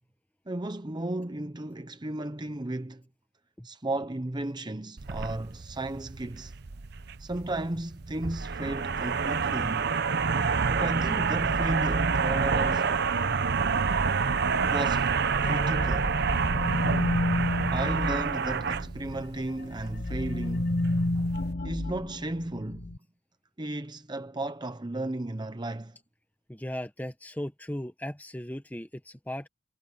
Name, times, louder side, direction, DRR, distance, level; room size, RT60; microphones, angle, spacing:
voice 1, 0.5-3.0 3.6-6.5 7.2-9.9 10.7-13.0 14.7-15.1 15.4-16.2 17.7-20.8 21.6-22.9 23.6-26.0, right 1 dB, 25° right, 0.8 m, -34 dB
sound 1, 5.0-21.5, right 5 dB, 55° right, 0.8 m, -28 dB
sound 2, 15.3-19.2 19.6-23.0, left 1 dB, 50° left, 0.8 m, -31 dB
voice 2, 26.5-29.5, left 1 dB, 10° left, 1.4 m, -37 dB
head